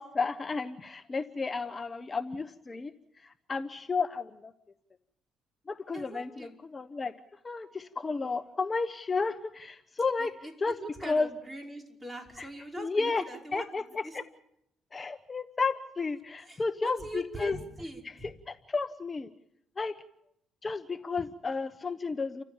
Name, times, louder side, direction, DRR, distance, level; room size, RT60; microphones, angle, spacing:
voice 1, 0.0-2.9 3.2-4.5 5.7-7.1 7.4-10.3 10.6-10.8 11.0-11.3 12.4-12.5 12.8-13.2 13.5-14.2 14.9-17.6 18.5-19.3 19.8-19.9 20.6-22.4, left 4 dB, 30° left, 9 dB, 1.0 m, -32 dB
voice 2, 5.9-6.6 10.2-10.5 10.8-13.7 14.0-14.2 16.4-18.3, right 1 dB, 15° right, 2 dB, 5.3 m, -42 dB
30.0 x 15.0 x 7.3 m, 0.79 s
cardioid pair, 90°, 0 cm